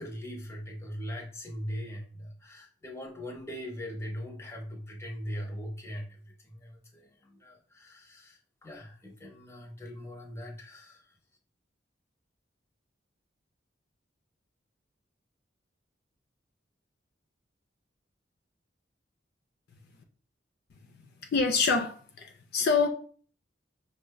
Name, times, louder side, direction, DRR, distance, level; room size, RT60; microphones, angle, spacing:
voice 1, 0.0-6.2 6.4-11.0, equal, 15° left, 0.7 m, -40 dB
voice 2, 21.3-22.9, left 4 dB, 55° left, 0.4 m, -26 dB
5.8 x 2.1 x 2.2 m
head